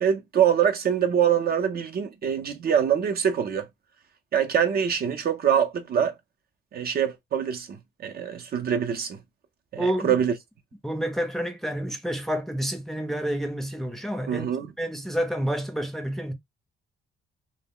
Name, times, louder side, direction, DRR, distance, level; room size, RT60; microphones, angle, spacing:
voice 1, 0.0-3.7 4.3-6.1 6.7-9.2 9.7-10.3 14.3-14.7, right 8 dB, 50° right, 0.5 m, -24 dB
voice 2, 9.8-10.2 10.8-14.5 14.8-16.3, right 1 dB, ahead, 0.6 m, -29 dB
2.2 x 2.0 x 3.6 m
cardioid pair, 90°, 20 cm